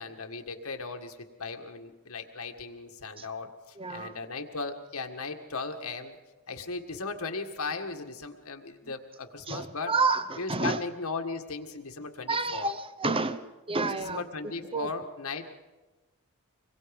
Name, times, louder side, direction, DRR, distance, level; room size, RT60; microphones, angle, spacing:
voice 1, 0.0-6.2 6.5-9.9 10.4-12.7 13.8-15.5, left 3 dB, 75° left, 1.8 m, -37 dB
voice 2, 3.8-4.2 9.5-10.8 12.3-14.9, right 3 dB, 25° right, 0.8 m, -30 dB
25.5 x 22.5 x 5.3 m
head